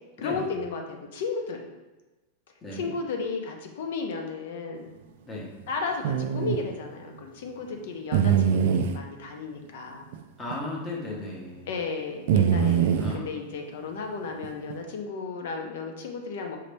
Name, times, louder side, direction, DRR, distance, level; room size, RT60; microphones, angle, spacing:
voice 1, 0.2-1.6 2.7-4.9 5.7-10.0 11.7-16.6, left 4 dB, 55° left, 3 dB, 0.7 m, -34 dB
sound 1, 6.0-6.6 8.1-9.0 10.1-10.2 10.5-10.6 12.3-13.2 14.4-14.7, right 8 dB, 55° right, 0.3 m, -23 dB
voice 2, 10.4-11.7 12.6-13.3, left 2 dB, 15° left, -3 dB, 0.8 m, -36 dB
5.1 x 2.8 x 3.4 m, 1.1 s
supercardioid pair, 180°, 0 cm